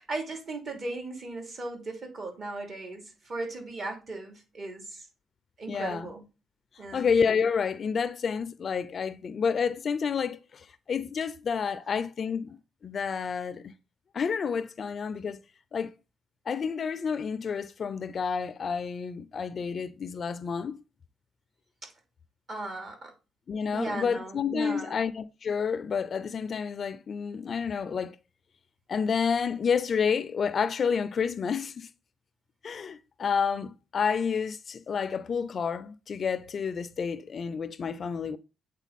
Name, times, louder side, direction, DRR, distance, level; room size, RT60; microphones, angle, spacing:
voice 1, 0.0-5.0 5.6-6.2 6.8-7.1 22.5-23.1 23.7-25.0, right 2 dB, 50° right, 2.8 m, -37 dB
voice 2, 5.7-6.1 6.9-13.7 14.1-15.4 15.7-15.9 16.5-20.8 23.5-28.2 28.9-31.9 32.6-38.4, left 6 dB, 50° left, 0.5 m, -29 dB
8.2 x 3.7 x 4.1 m
cardioid pair, 90°, 0 cm